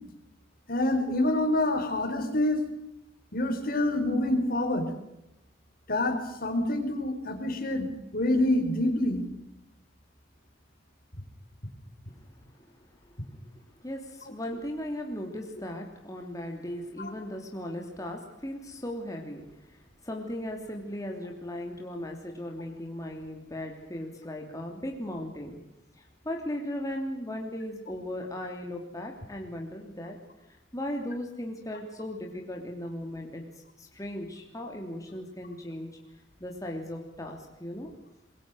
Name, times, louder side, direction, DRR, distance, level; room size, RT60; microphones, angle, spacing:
voice 1, 0.7-2.6 3.3-4.9 5.9-7.9 8.1-9.2 17.0-17.1, left 1 dB, 55° left, 6 dB, 4.6 m, -26 dB
voice 2, 13.3-25.6 26.0-30.2 30.7-33.4 33.8-35.9 36.4-37.9, left 1 dB, 20° left, 1 dB, 3.1 m, -37 dB
26.5 x 22.5 x 6.4 m, 0.88 s
head